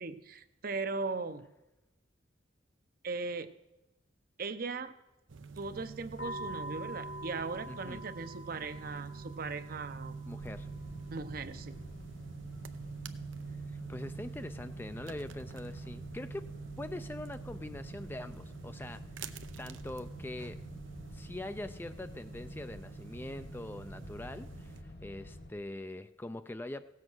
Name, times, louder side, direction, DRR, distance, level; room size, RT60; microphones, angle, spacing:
voice 1, 0.0-1.5 3.0-3.5 4.4-4.9 5.6-10.2 11.1-11.8, right 4 dB, 50° right, 11 dB, 0.7 m, -38 dB
sound 1, 5.3-24.8, right 4 dB, 85° right, 0.7 m, -46 dB
sound 2, 6.2-13.2, right 1 dB, 85° left, 2.9 m, -47 dB
voice 2, 7.7-8.0 10.3-10.7 13.7-16.5 16.8-19.0 19.6-20.6 21.1-26.8, left 1 dB, 10° left, 10 dB, 0.4 m, -43 dB
sound 3, 10.4-25.5, left 1 dB, 55° left, 1.5 m, -50 dB
16.5 x 7.5 x 6.2 m, 0.97 s
head